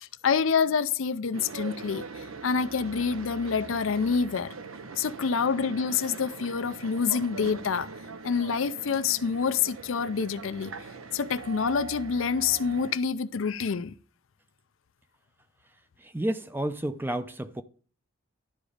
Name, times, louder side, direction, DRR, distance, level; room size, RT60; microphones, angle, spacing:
voice 1, 0.0-4.5 5.0-7.9 8.2-10.7 11.1-13.9, left 6 dB, 75° left, 0.5 m, -27 dB
sound 1, 1.3-12.9, right 4 dB, 85° right, 0.7 m, -42 dB
voice 2, 16.0-17.6, right 1 dB, 10° right, 0.5 m, -31 dB
11.5 x 4.0 x 5.0 m
head